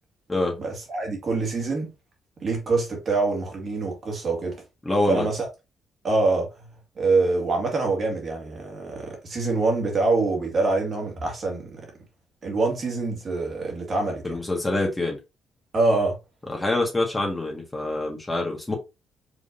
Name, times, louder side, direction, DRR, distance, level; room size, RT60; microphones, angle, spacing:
voice 1, 0.6-1.9 2.4-4.6 5.1-5.5 6.0-6.5 7.0-11.9 12.4-14.4 15.7-16.2, right 3 dB, 45° right, 2.0 m, -25 dB
voice 2, 4.8-5.2 14.2-15.2 16.5-18.8, left 2 dB, 15° left, 1.7 m, -25 dB
5.0 x 3.6 x 2.7 m
cardioid pair, 90°, 0 cm